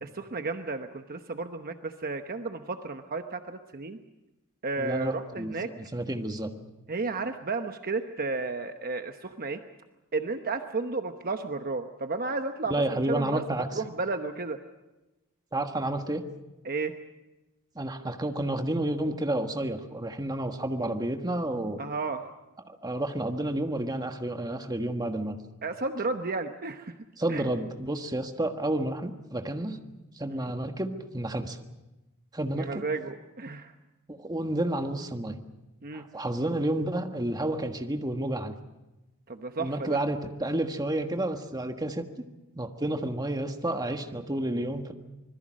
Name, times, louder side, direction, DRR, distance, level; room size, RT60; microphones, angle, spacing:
voice 1, 0.0-4.0 4.6-5.7 6.9-9.6 10.1-14.6 16.6-17.0 21.8-22.3 25.6-26.9 27.3-27.4 30.3-30.5 32.6-33.7 35.8-36.1 39.3-40.0, right 3 dB, 40° right, 7 dB, 1.0 m, -33 dB
voice 2, 4.8-6.5 12.7-13.8 15.5-16.2 17.7-21.8 22.6-25.4 27.2-29.8 30.2-31.6 32.3-32.8 34.1-35.4 35.9-38.5 39.6-42.1 42.5-44.9, right 1 dB, 20° right, 5 dB, 1.5 m, -30 dB
26.0 x 21.0 x 6.4 m, 1.0 s
head